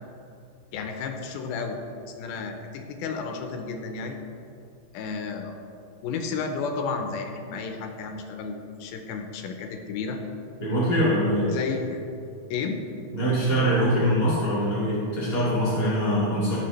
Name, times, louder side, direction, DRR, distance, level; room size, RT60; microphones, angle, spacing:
voice 1, 0.7-1.8 2.1-4.2 4.9-5.6 6.0-10.2 11.5-12.0 12.5-12.8 16.1-16.2, left 5 dB, 90° left, 4 dB, 2.6 m, -32 dB
voice 2, 10.6-11.4 13.1-16.6, equal, 20° left, -9 dB, 1.1 m, -23 dB
16.0 x 6.2 x 3.3 m, 2.6 s
omnidirectional pair, 4.2 m